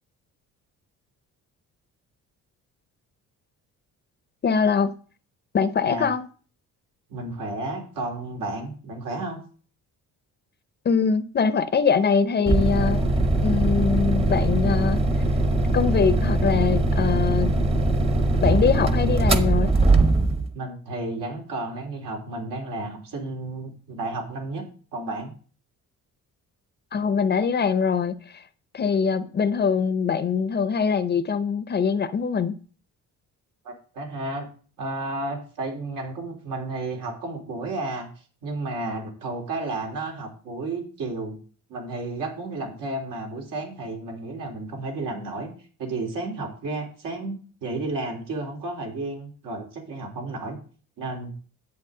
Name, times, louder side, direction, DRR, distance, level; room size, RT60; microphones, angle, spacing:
voice 1, 4.4-4.9 5.5-6.3 10.8-13.0 13.4-15.0 15.7-17.5 18.4-19.7 26.9-28.4 28.7-32.5, left 6 dB, 30° left, 0.6 m, -23 dB
voice 2, 7.1-9.4 20.5-24.7 24.9-25.3 33.6-34.5 34.8-38.1 38.4-41.4 41.7-45.5 45.8-47.4 47.6-50.6 51.0-51.3, right 2 dB, 85° right, 3.5 m, -32 dB
sound 1, 12.5-20.5, right 2 dB, 20° right, 0.9 m, -21 dB
11.0 x 8.2 x 3.8 m
cardioid pair, 145°, 32 cm